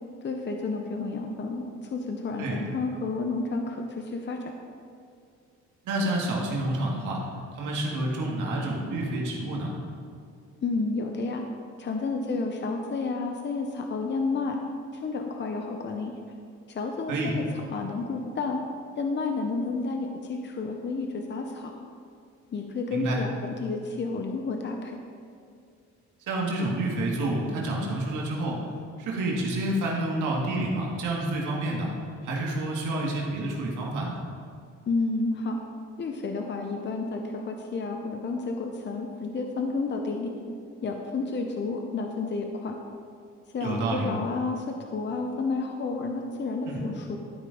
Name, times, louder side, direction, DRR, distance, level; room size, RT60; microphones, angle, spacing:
voice 1, 0.2-4.5 10.6-11.4 11.8-14.6 14.9-16.1 16.7-17.4 17.7-18.6 19.0-21.9 22.5-25.0 34.9-35.6 36.0-40.3 40.8-42.8 43.5-47.2, left 3 dB, 35° left, 3 dB, 0.8 m, -31 dB
voice 2, 5.8-7.2 7.5-9.7 17.1-17.3 22.9-23.2 26.3-28.6 29.0-31.9 32.2-34.2 43.6-44.1 46.7-46.8, right 1 dB, 85° right, -2 dB, 1.8 m, -29 dB
12.5 x 5.2 x 3.9 m, 2.4 s
cardioid pair, 90°, 30 cm